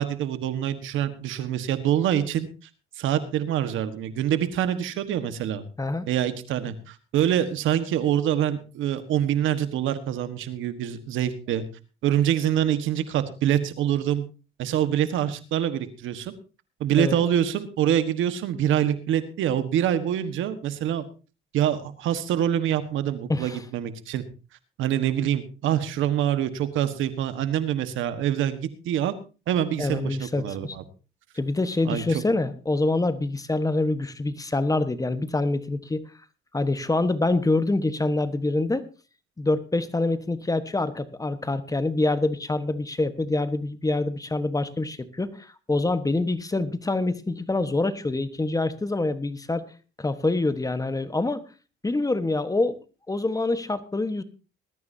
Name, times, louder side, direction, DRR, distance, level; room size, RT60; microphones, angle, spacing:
voice 1, 0.0-2.5 3.0-5.6 6.1-11.6 12.0-14.2 14.6-16.3 16.8-21.1 21.5-24.2 24.8-28.6 28.8-29.1 29.5-30.8 31.8-32.2, right 10 dB, 85° right, 11 dB, 1.5 m, -25 dB
voice 2, 5.8-6.1 17.0-17.2 23.3-23.6 29.8-30.8 31.3-36.0 36.5-38.9 39.4-49.7 50.0-51.4 51.8-52.8 53.1-54.2, left 2 dB, 15° left, 12 dB, 1.3 m, -26 dB
20.0 x 13.5 x 2.8 m, 0.33 s
cardioid pair, 90°, 20 cm